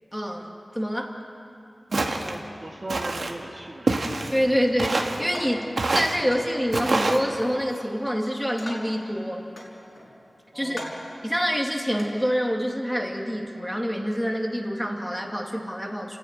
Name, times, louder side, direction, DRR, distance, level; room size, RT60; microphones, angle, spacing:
voice 1, 0.1-1.2 4.3-9.5 10.5-10.8 11.2-16.2, equal, ahead, 1 dB, 2.4 m, -26 dB
Walk footsteps, 1.9-2.4 2.9-3.3 3.9-4.4 4.8-5.2 5.8-6.2 6.7-7.2, right 2 dB, 65° right, 1.6 m, -25 dB
voice 2, 2.2-4.0 10.5-11.1, right 2 dB, 40° right, 1 dB, 1.5 m, -38 dB
sound 1, 5.3-5.7 6.3-6.5 7.3-7.9 8.3-9.0 9.6-10.2 10.7-11.1 11.9-12.1, left 1 dB, 50° left, 5.2 m, -40 dB
30.0 x 11.0 x 9.3 m, 2.8 s
wide cardioid pair, 80°, 0 cm